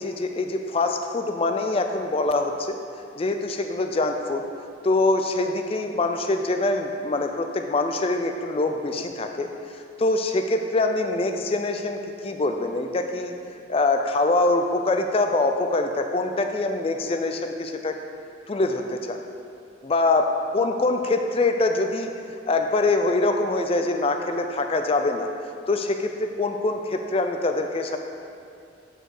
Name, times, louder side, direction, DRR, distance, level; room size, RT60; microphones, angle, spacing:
voice 1, 0.0-2.8 3.2-4.4 4.8-13.3 13.7-17.9 18.5-19.2 19.8-20.3 20.5-25.3 25.7-28.0, left 2 dB, 30° left, 5 dB, 0.4 m, -24 dB
8.9 x 4.5 x 4.8 m, 2.5 s
head